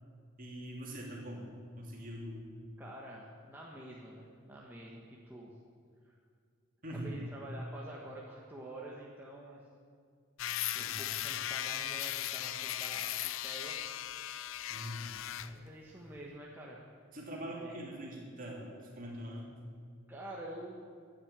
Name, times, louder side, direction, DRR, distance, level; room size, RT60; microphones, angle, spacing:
voice 1, 0.4-1.4 1.8-2.5 6.8-7.1 10.7-11.0 14.7-15.1 17.1-19.5, equal, 40° right, -2 dB, 3.2 m, -43 dB
voice 2, 2.8-5.5 6.0-6.1 6.9-9.6 10.7-13.7 15.4-16.8 17.6-17.9 20.1-20.9, right 1 dB, 10° right, -4 dB, 1.3 m, -48 dB
sound 1, 10.4-15.5, left 12 dB, 65° left, 0.5 m, -37 dB
13.0 x 9.1 x 8.8 m, 2.2 s
head